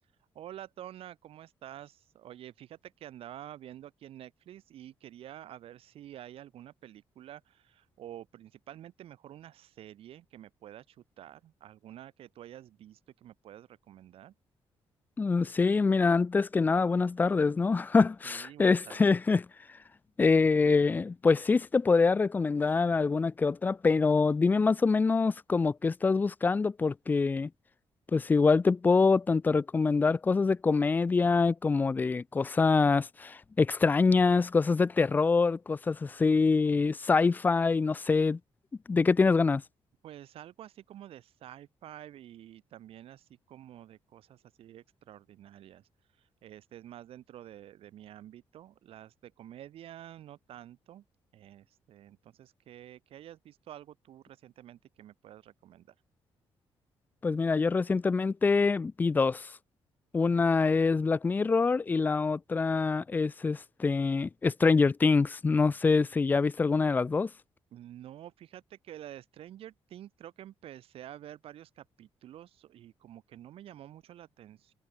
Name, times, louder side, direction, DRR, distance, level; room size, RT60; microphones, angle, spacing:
voice 1, 0.3-14.3 18.2-19.1 40.0-45.9 46.2-51.0 51.3-55.9 60.3-60.4 67.7-74.7, right 12 dB, 75° right, 2.3 m, -49 dB
voice 2, 15.2-19.4 20.2-27.5 28.1-38.4 38.9-39.6 57.2-59.5 60.1-67.3, left 4 dB, 20° left, 0.5 m, -25 dB
cardioid pair, 175°, 10 cm